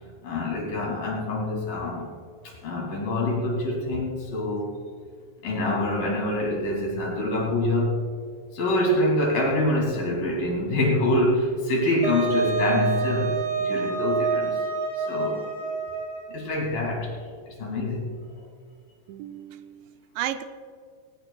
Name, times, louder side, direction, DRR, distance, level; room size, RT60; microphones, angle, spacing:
voice 1, 0.2-2.1 2.4-4.8 5.4-8.1 8.5-14.6 15.0-15.5 16.3-17.2 17.5-18.1, left 1 dB, 60° left, -1 dB, 3.6 m, -25 dB
Wind instrument woodwind instrument, 12.0-16.4, right 4 dB, 25° right, 4.3 m, -27 dB
voice 2, 19.1-20.4, right 12 dB, 85° right, 9 dB, 2.8 m, -34 dB
19.5 x 18.0 x 2.3 m, 2.1 s
omnidirectional pair, 5.1 m